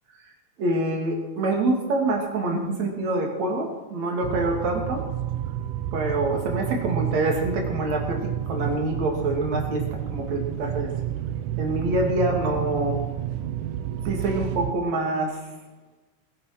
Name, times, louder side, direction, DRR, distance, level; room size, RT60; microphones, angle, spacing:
voice 1, 0.6-5.1 5.9-10.9 11.6-13.0 14.1-15.4, right 2 dB, 60° right, 1 dB, 3.7 m, -26 dB
sound 1, 4.2-14.7, right 12 dB, 80° right, 2.2 m, -30 dB
20.5 x 9.2 x 6.0 m, 1.2 s
omnidirectional pair, 3.5 m